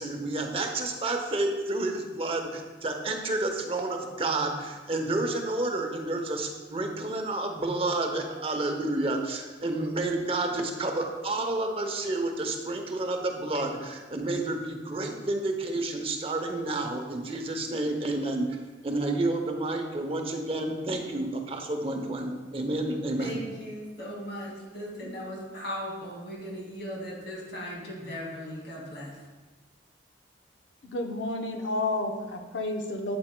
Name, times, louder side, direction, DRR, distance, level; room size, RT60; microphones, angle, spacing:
voice 1, 0.0-18.6 18.8-23.4, right 2 dB, 30° right, 4 dB, 0.7 m, -30 dB
voice 2, 23.2-29.1, equal, 70° left, -3 dB, 2.2 m, -38 dB
voice 3, 30.8-33.2, left 2 dB, 90° left, 4 dB, 0.8 m, -31 dB
8.6 x 7.5 x 2.2 m, 1.3 s
head